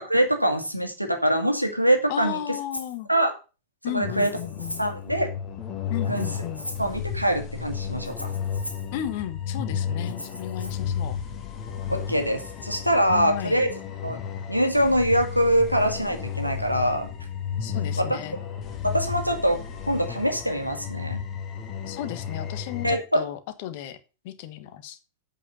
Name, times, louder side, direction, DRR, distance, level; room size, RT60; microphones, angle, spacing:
voice 1, 0.1-2.4 3.1-3.3 3.9-4.3 4.8-5.3 6.1-6.2 6.8-8.3 11.9-13.7 14.0-14.2 14.5-17.1 18.0-18.1 18.8-19.6 19.9-21.2 22.8-23.2, equal, 90° right, 1.8 m, -23 dB
voice 2, 2.1-3.1 3.8-4.8 5.9-6.7 8.9-11.2 13.1-13.6 17.6-18.4 21.9-24.0 24.2-25.0, left 11 dB, 50° left, 1.3 m, -34 dB
Rattle (instrument), 2.7-3.0 4.1-5.0 6.0-6.9 8.0-8.9 10.1-10.7, equal, 90° left, 1.6 m, -39 dB
sound 1, 4.0-23.0, left 7 dB, 30° left, 1.8 m, -33 dB
8.5 x 5.4 x 6.8 m
figure-of-eight pair, 90°, 0 cm